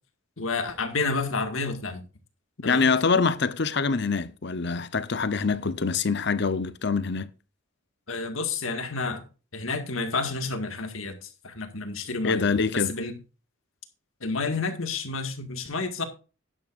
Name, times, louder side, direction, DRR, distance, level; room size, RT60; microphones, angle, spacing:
voice 1, 0.4-2.0 2.6-2.9 8.1-9.2 9.5-12.4 12.7-13.2 14.2-16.0, left 4 dB, 85° left, 2.0 m, -30 dB
voice 2, 2.6-7.3 12.2-12.9, left 4 dB, 55° left, 0.8 m, -25 dB
11.0 x 11.0 x 2.5 m
head